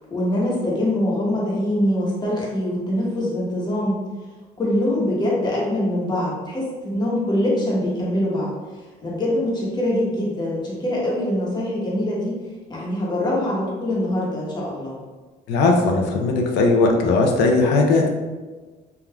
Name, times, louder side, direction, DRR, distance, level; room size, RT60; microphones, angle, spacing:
voice 1, 0.1-4.0 4.6-8.5 9.0-12.4 12.7-15.0, left 1 dB, 25° left, -5 dB, 1.0 m, -23 dB
voice 2, 15.5-18.1, left 3 dB, 80° left, 2 dB, 0.5 m, -18 dB
3.4 x 2.4 x 2.2 m, 1.3 s
cardioid pair, 110°, 17 cm